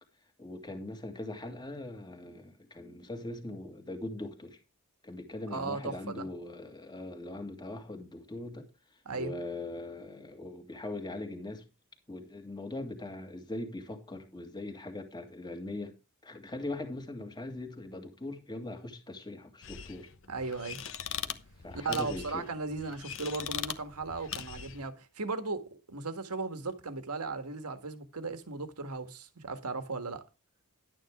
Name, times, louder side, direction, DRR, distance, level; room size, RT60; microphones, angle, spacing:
voice 1, 0.4-4.6 5.0-8.7 9.1-11.6 12.1-15.9 16.2-20.1 21.2-22.5, left 2 dB, 20° left, 2.1 m, -41 dB
voice 2, 5.5-6.3 9.0-9.3 20.3-20.8 21.7-30.2, right 3 dB, 90° right, 1.7 m, -36 dB
sound 1, 19.6-24.9, left 8 dB, 60° left, 1.1 m, -41 dB
11.5 x 9.1 x 3.6 m
head